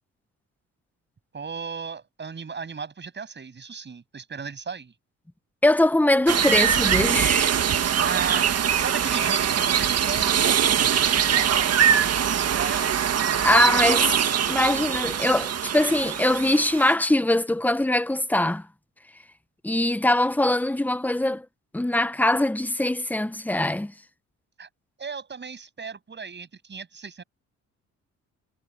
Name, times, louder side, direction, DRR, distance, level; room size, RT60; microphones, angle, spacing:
voice 1, 1.3-4.9 8.0-11.7 12.4-12.9 24.6-24.7 25.0-27.2, right 5 dB, 35° right, 7.8 m, -35 dB
voice 2, 5.6-7.5 13.4-14.1 14.5-18.6 19.6-21.4 21.7-23.9, left 1 dB, 5° left, 1.2 m, -22 dB
sound 1, 6.3-16.9, right 8 dB, 55° right, 1.8 m, -22 dB
cardioid pair, 90°, 30 cm